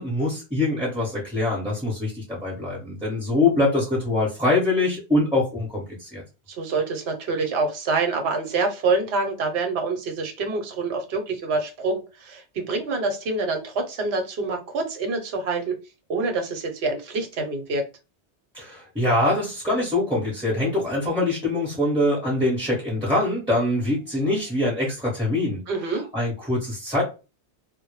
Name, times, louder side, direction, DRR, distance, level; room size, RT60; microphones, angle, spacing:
voice 1, 0.0-6.2 18.5-25.6 26.1-27.0, left 2 dB, 5° right, -5 dB, 0.8 m, -24 dB
voice 2, 6.5-15.8 16.1-17.9 25.7-26.1, right 3 dB, 70° right, 5 dB, 0.9 m, -26 dB
2.1 x 2.0 x 3.0 m, 0.30 s
omnidirectional pair, 1.1 m